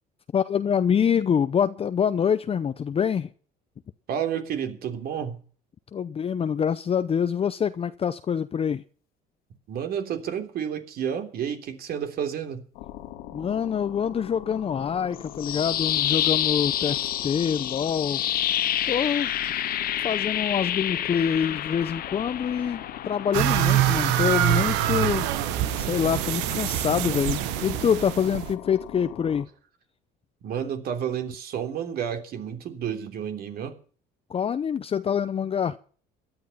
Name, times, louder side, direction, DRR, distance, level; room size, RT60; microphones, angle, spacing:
voice 1, 0.3-3.3 5.9-8.8 13.3-18.2 18.8-19.3 20.0-25.3 25.7-29.5 34.3-35.8, left 7 dB, 35° left, 0.7 m, -25 dB
voice 2, 4.1-5.4 9.7-12.6 30.4-33.7, right 8 dB, 60° right, 3.3 m, -30 dB
sound 1, 12.7-29.5, left 12 dB, 90° left, 2.2 m, -41 dB
sound 2, 15.2-25.2, left 11 dB, 60° left, 1.3 m, -29 dB
sound 3, 23.3-28.5, right 14 dB, 85° right, 1.2 m, -25 dB
16.5 x 11.5 x 5.7 m
cardioid pair, 100°, 18 cm